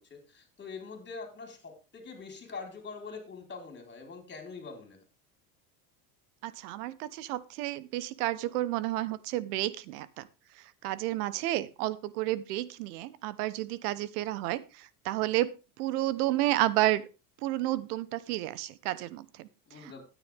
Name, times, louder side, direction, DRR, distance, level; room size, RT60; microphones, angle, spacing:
voice 1, 0.1-5.0 19.7-20.0, left 4 dB, 25° left, 4 dB, 4.3 m, -44 dB
voice 2, 6.4-10.3 10.8-17.1 17.4-19.5 19.8-20.0, right 15 dB, 80° right, 18 dB, 1.0 m, -31 dB
13.0 x 9.6 x 3.5 m, 0.30 s
supercardioid pair, 110°, 46 cm